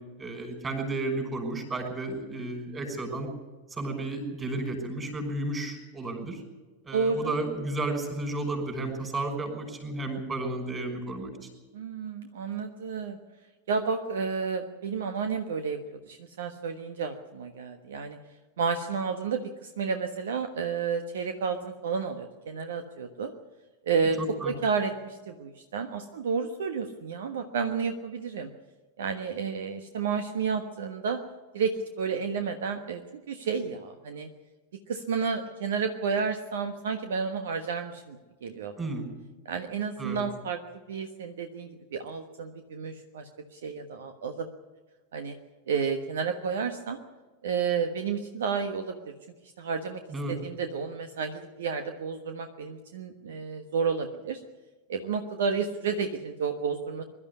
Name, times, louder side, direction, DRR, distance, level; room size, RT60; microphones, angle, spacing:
voice 1, 0.2-3.3 3.7-6.4 6.8-11.3 24.2-24.5 38.8-39.1 40.0-40.2 50.1-50.3, right 2 dB, 20° right, 4 dB, 5.6 m, -32 dB
voice 2, 6.9-7.3 11.7-13.2 13.7-18.2 18.6-23.3 23.9-24.2 24.4-28.5 29.0-31.2 31.5-33.0 33.3-34.3 34.9-38.9 39.4-40.6 40.9-44.5 45.1-45.4 45.7-47.0 47.4-49.0 49.6-50.0 50.3-54.4 54.9-57.0, right 5 dB, 60° right, 7 dB, 1.3 m, -31 dB
22.5 x 12.5 x 9.6 m, 1.3 s
figure-of-eight pair, 90°, 0 cm